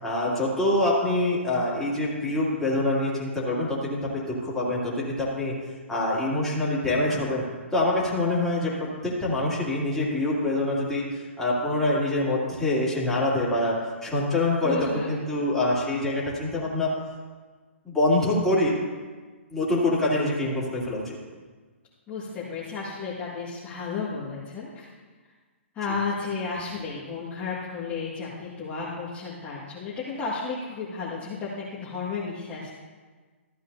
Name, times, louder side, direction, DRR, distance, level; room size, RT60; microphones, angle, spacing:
voice 1, 0.0-5.5 5.9-7.4 7.7-8.7 9.0-13.8 14.0-16.9 17.8-18.8 19.5-21.2, left 1 dB, 5° left, -8 dB, 2.8 m, -25 dB
voice 2, 14.6-15.1 22.1-24.9 25.7-32.7, left 4 dB, 20° left, -8 dB, 1.9 m, -33 dB
14.5 x 8.6 x 2.8 m, 1.4 s
figure-of-eight pair, 130°, 7 cm